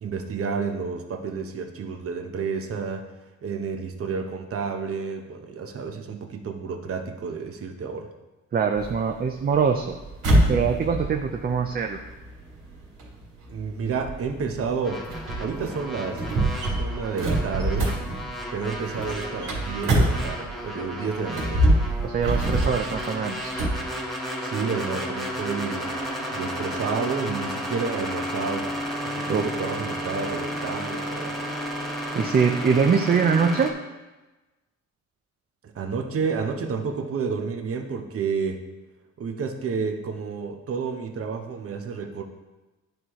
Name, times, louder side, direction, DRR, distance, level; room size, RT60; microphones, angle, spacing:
voice 1, 0.0-3.0 3.4-8.1 13.5-15.1 15.4-16.3 16.8-18.0 18.5-21.7 22.5-22.7 24.4-25.9 26.3-28.7 29.0-31.4 35.7-38.6 39.2-42.2, right 5 dB, 50° right, 4 dB, 0.9 m, -30 dB
voice 2, 8.5-10.0 10.5-12.0 22.0-23.5 29.3-29.5 32.1-33.7, right 6 dB, 30° right, 5 dB, 0.5 m, -23 dB
sound 1, 8.8-20.7 21.2-23.8, right 1 dB, 90° right, 2.4 m, -26 dB
sound 2, 14.8-33.7, equal, ahead, 1.4 m, -33 dB
10.5 x 4.8 x 3.0 m, 1.1 s
cardioid pair, 90°, 30 cm